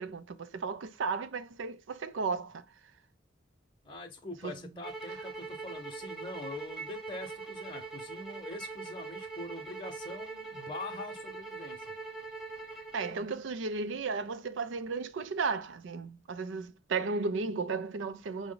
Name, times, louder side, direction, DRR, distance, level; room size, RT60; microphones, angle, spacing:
voice 1, 0.0-2.6 4.4-4.5 12.9-18.5, right 4 dB, 80° right, 0.5 m, -34 dB
voice 2, 3.8-11.9, left 2 dB, 25° left, 0.8 m, -43 dB
sound 1, 4.8-13.2, right 4 dB, 5° right, 0.8 m, -42 dB
5.8 x 2.1 x 3.8 m
head